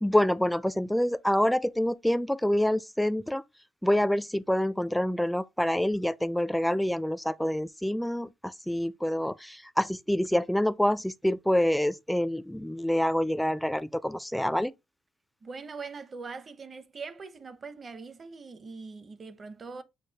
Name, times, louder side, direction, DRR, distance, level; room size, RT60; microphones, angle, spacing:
voice 1, 0.0-3.4 3.8-14.7, left 1 dB, 5° left, 0.4 m, -27 dB
voice 2, 15.4-19.8, right 4 dB, 40° right, 0.7 m, -42 dB
6.5 x 2.3 x 3.3 m
cardioid pair, 90°, 0 cm